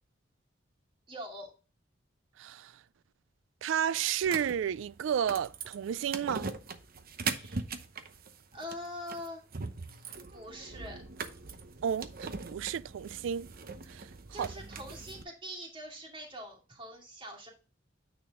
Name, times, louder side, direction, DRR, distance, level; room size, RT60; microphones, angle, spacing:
voice 1, 1.1-1.5 7.2-7.6 8.5-9.4 10.3-11.0 14.3-17.5, equal, 25° right, 2.5 m, -43 dB
voice 2, 2.4-2.7 3.6-6.5 11.8-13.5 13.9-14.1 14.4-14.5, right 8 dB, 75° right, 0.3 m, -32 dB
sound 1, 4.2-15.2, right 4 dB, 50° right, 0.8 m, -41 dB
9.2 x 4.3 x 3.6 m
head